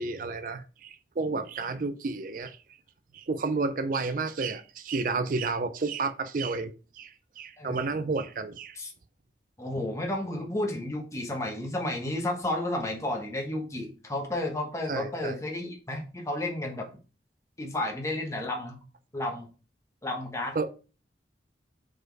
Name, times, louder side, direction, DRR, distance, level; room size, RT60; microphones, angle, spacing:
voice 1, 0.0-2.6 3.1-8.8 14.9-15.4 20.6-20.7, right 3 dB, 50° right, 0.4 m, -31 dB
voice 2, 7.6-7.9 8.8-8.9 9.6-16.9 17.6-18.8 19.1-19.5 20.0-20.6, left 1 dB, 15° left, 1.2 m, -32 dB
5.1 x 4.2 x 4.6 m
head